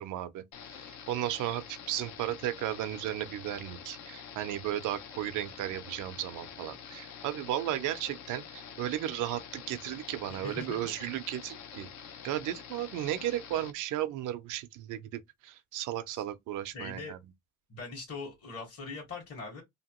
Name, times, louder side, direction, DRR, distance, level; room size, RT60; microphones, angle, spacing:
voice 1, 0.0-11.9 12.2-17.2, right 12 dB, 90° right, 0.5 m, -35 dB
sound 1, 0.5-13.7, left 8 dB, 75° left, 0.6 m, -47 dB
voice 2, 10.3-10.9 16.1-16.2 16.7-17.1 17.7-19.6, left 4 dB, 50° left, 1.4 m, -41 dB
2.9 x 2.2 x 2.9 m
cardioid pair, 90°, 30 cm